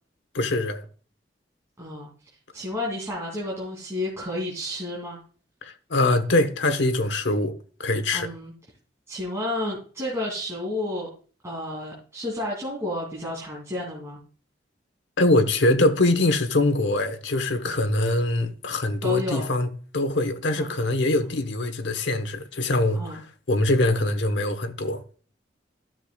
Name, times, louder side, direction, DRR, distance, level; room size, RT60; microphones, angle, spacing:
voice 1, 0.3-0.8 5.6-7.5 7.8-8.3 15.2-23.2 23.5-25.0, left 2 dB, 75° left, 1.0 m, -23 dB
voice 2, 1.8-2.1 2.5-5.2 8.1-8.5 9.1-11.1 11.4-14.2 19.0-19.5 20.6-20.7 22.9-23.2, left 1 dB, 15° right, 2.6 m, -31 dB
12.5 x 6.5 x 2.3 m
head